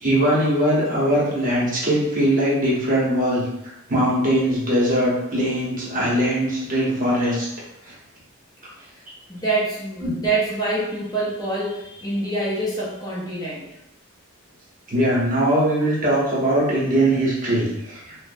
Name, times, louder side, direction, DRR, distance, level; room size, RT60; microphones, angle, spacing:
voice 1, 0.0-3.4 3.9-7.5 10.0-10.1 14.9-18.2, right 1 dB, 40° right, -6 dB, 0.8 m, -21 dB
voice 2, 9.3-13.7, right 2 dB, 20° left, -7 dB, 0.5 m, -25 dB
2.4 x 2.0 x 2.5 m, 0.83 s
head